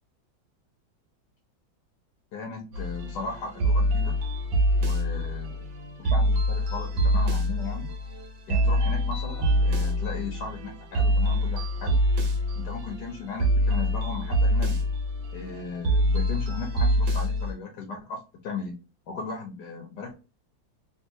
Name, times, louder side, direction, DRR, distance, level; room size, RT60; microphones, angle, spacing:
voice 1, 2.3-4.2 4.7-5.7 6.0-7.9 8.5-12.0 12.6-14.8 15.3-18.8 19.1-20.1, left 4 dB, 65° left, 3 dB, 1.1 m, -37 dB
sound 1, 2.7-17.5, equal, 80° right, 1.7 m, -25 dB
3.6 x 2.6 x 2.8 m, 0.32 s
omnidirectional pair, 2.1 m